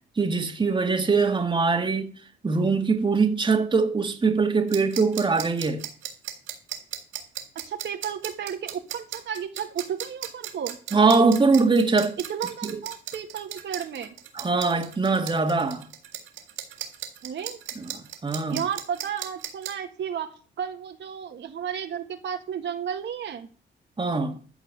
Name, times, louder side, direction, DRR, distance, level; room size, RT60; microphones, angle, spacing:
voice 1, 0.2-2.1 2.4-5.9 10.9-12.2 14.3-15.9 17.8-18.6 24.0-24.4, right 4 dB, 25° right, 1.9 m, -22 dB
sound 1, 4.7-19.7, right 12 dB, 90° right, 3.4 m, -35 dB
voice 2, 7.7-10.8 12.3-14.1 17.2-17.6 18.5-23.5, right 8 dB, 65° right, 1.8 m, -33 dB
14.0 x 4.7 x 8.3 m
cardioid pair, 90°, 20 cm